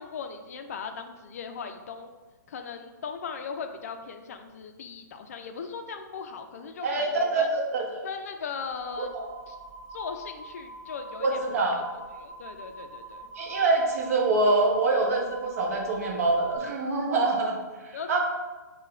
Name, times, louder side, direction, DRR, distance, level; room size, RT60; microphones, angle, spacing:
voice 1, 0.0-2.1 2.5-7.5 8.0-9.1 9.5-9.6 9.9-11.4 11.7-11.8 12.1-13.3 17.9-18.2, left 6 dB, 50° left, 6 dB, 0.4 m, -38 dB
voice 2, 6.8-8.0 9.0-9.2 11.2-11.8 13.4-17.6 17.8-18.2, right 3 dB, 50° right, 0 dB, 0.8 m, -25 dB
sound 1, 8.6-16.6, right 2 dB, 5° right, 1.0 m, -44 dB
5.2 x 2.2 x 2.5 m, 1.3 s
figure-of-eight pair, 130°, 10 cm